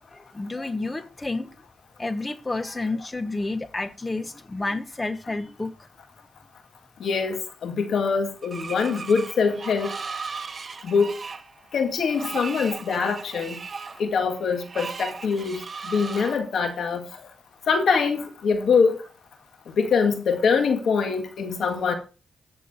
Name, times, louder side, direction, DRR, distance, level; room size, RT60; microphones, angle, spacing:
voice 1, 0.1-1.5 2.0-5.9, left 2 dB, 25° left, 1.2 m, -30 dB
voice 2, 7.0-10.0 10.8-11.1 11.7-13.6 14.0-17.1 17.7-19.0 19.7-21.9, left 5 dB, 75° left, 2.0 m, -24 dB
Screech, 8.4-16.4, right 5 dB, 50° right, 1.1 m, -37 dB
13.0 x 7.0 x 4.2 m
cardioid pair, 65°, 0 cm